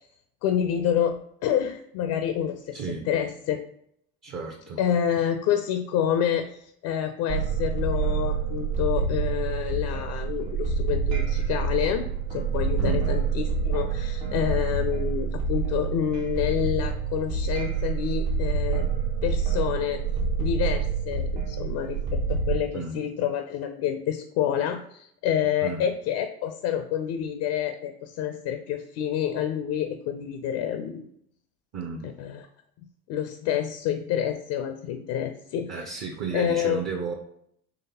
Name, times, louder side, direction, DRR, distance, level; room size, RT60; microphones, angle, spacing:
voice 1, 0.4-3.6 4.8-12.0 12.3-18.9 19.2-20.0 20.4-31.0 32.0-32.4 33.1-35.7 36.3-36.8, left 9 dB, 50° left, 8 dB, 0.4 m, -28 dB
voice 2, 2.7-3.1 4.2-4.8 12.8-13.1 22.7-23.0 25.6-25.9 31.7-32.1 35.7-37.1, right 5 dB, 35° right, 1 dB, 0.6 m, -33 dB
sound 1, 7.3-22.5, right 5 dB, 65° right, 1.0 m, -27 dB
3.8 x 3.2 x 2.8 m, 0.68 s
hypercardioid pair, 80°, 43 cm